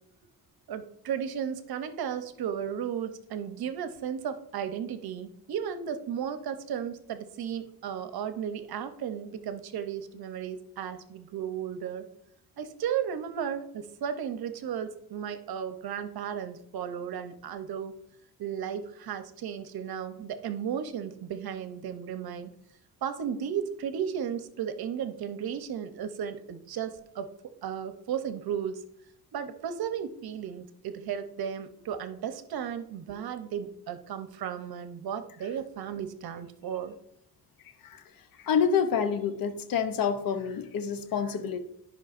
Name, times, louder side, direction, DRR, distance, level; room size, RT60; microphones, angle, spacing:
voice 1, 0.7-12.1 12.6-18.0 18.4-22.5 23.0-28.8 29.3-37.0, right 8 dB, 65° right, 10 dB, 0.8 m, -34 dB
voice 2, 38.4-41.6, left 7 dB, 60° left, 9 dB, 0.7 m, -27 dB
11.5 x 5.6 x 2.5 m, 0.75 s
cardioid pair, 120°, 39 cm